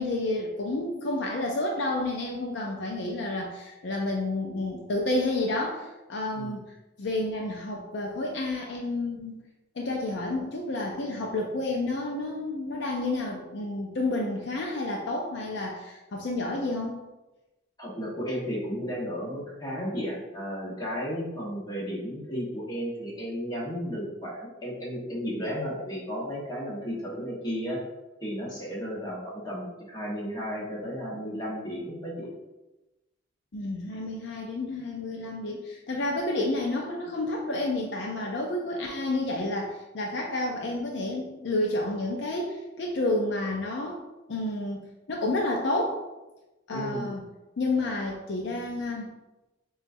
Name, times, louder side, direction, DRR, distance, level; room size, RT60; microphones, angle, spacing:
voice 1, 0.0-6.6 7.0-9.4 9.8-17.0 33.5-44.0 44.3-46.0 46.7-47.3 47.6-49.1, left 2 dB, 60° left, -1 dB, 0.5 m, -30 dB
voice 2, 17.8-27.8 28.2-32.3 46.7-47.1, equal, 20° left, -6 dB, 1.2 m, -34 dB
6.9 x 2.4 x 2.6 m, 1.0 s
head